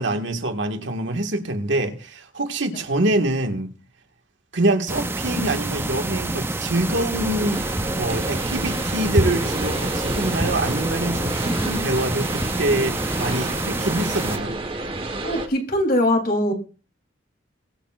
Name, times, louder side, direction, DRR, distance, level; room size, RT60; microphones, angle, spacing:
voice 1, 0.0-3.7 4.5-7.7 8.0-14.6, right 1 dB, 75° right, 1.8 m, -25 dB
sound 1, 4.9-14.4, right 2 dB, 10° right, 0.5 m, -27 dB
sound 2, 7.1-15.5, right 1 dB, 30° right, 1.4 m, -29 dB
voice 2, 15.2-16.5, left 1 dB, 50° left, 3.6 m, -21 dB
23.0 x 8.9 x 2.5 m
head